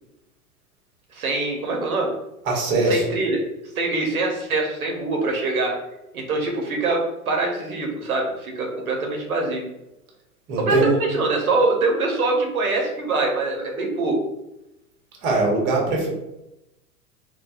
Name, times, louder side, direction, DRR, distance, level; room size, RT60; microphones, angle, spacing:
voice 1, 1.1-2.1 2.8-3.4 3.7-5.7 6.1-9.6 10.6-14.2, right 3 dB, 70° right, 1 dB, 0.9 m, -24 dB
voice 2, 2.5-3.0 10.5-10.9 15.2-16.1, right 2 dB, 25° right, -1 dB, 0.9 m, -21 dB
4.2 x 2.2 x 2.2 m, 0.89 s
figure-of-eight pair, 95°, 46 cm